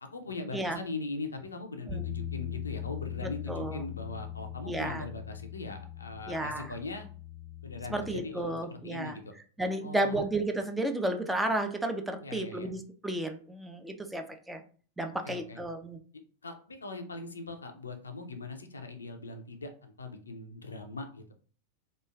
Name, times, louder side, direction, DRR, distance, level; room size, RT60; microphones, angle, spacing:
voice 1, 0.0-7.1 7.6-9.3 9.8-10.2 12.2-12.7 15.2-15.6 16.4-21.3, left 3 dB, 75° left, 6 dB, 0.4 m, -40 dB
Bass guitar, 1.9-8.1, left 10 dB, 35° right, 1.0 m, -40 dB
voice 2, 3.5-3.8 4.7-5.0 6.3-6.7 7.9-9.2 9.6-14.6 15.0-16.0, right 1 dB, 5° right, 5 dB, 0.3 m, -32 dB
3.0 x 2.3 x 2.3 m, 0.41 s
figure-of-eight pair, 90°, 0 cm